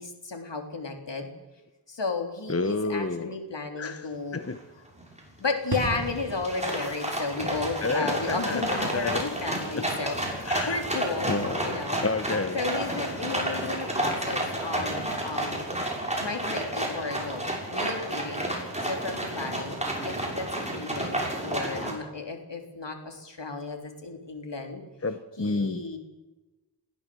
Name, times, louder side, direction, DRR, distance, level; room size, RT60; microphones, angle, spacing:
voice 1, 0.0-1.3 1.9-4.4 5.4-11.3 11.6-12.0 12.5-17.4 17.7-18.5 18.8-24.8 25.4-26.0, left 3 dB, 75° left, 4 dB, 3.7 m, -33 dB
voice 2, 2.5-3.3 3.8-4.6 7.8-9.2 9.7-9.8 10.4-10.8 11.3-11.7 12.0-12.6 25.0-25.8, left 3 dB, 35° left, 9 dB, 1.2 m, -30 dB
sound 1, 4.6-4.7 5.0-5.4 5.8-21.9, right 1 dB, 15° right, 6.5 m, -31 dB
sound 2, 5.7-12.2 12.5-12.6, right 2 dB, 60° right, 2.6 m, -40 dB
21.5 x 16.5 x 7.9 m, 1.1 s
wide cardioid pair, 75°, 43 cm